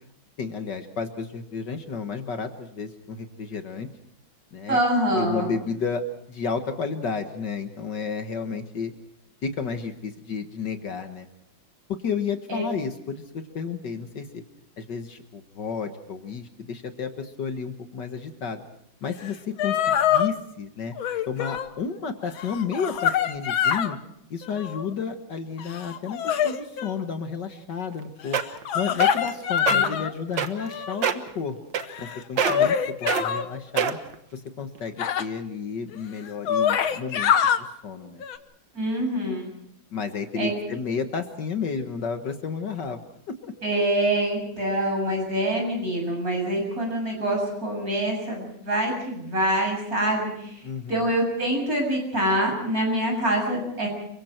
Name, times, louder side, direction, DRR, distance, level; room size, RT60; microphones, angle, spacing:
voice 1, 0.4-3.9 4.5-4.8 5.1-8.9 9.4-11.3 11.9-14.4 14.8-18.6 19.0-20.9 21.3-24.0 24.3-28.4 28.7-31.6 32.0-34.0 34.3-38.2 39.9-43.0 43.3-43.5 50.6-51.0, left 5 dB, 60° left, 7 dB, 2.0 m, -32 dB
voice 2, 4.7-5.5 12.5-12.6 29.7-29.8 38.7-39.4 40.4-40.5 43.6-50.6 50.9-53.9, right 1 dB, 45° right, 1 dB, 7.7 m, -25 dB
sound 1, 19.3-19.4 19.6-20.3 21.0-21.7 22.2-24.0 24.4-24.9 25.6-27.0 28.4-30.1 30.6-31.1 31.8-33.5 35.0-35.2 35.9-36.0 36.3-37.6 38.2-38.4, left 9 dB, 85° left, 1.9 m, -25 dB
sound 2, 27.9-28.0 28.3-28.6 29.0-29.3 29.6-29.8 30.4-30.7 31.0-31.3 31.7-32.1 32.4-32.7 33.1-33.2 33.8-34.1 34.8-34.9, right 8 dB, 65° right, 1.9 m, -24 dB
29.0 x 24.0 x 4.5 m, 0.72 s
omnidirectional pair, 2.2 m